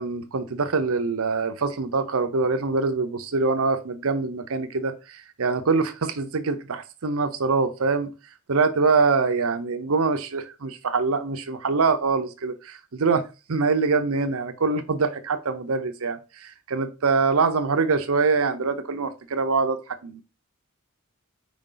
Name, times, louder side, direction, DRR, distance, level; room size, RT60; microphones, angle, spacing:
voice 1, 0.0-8.1 8.5-20.2, right 4 dB, 70° right, 0.7 m, -24 dB
5.2 x 4.8 x 3.8 m
head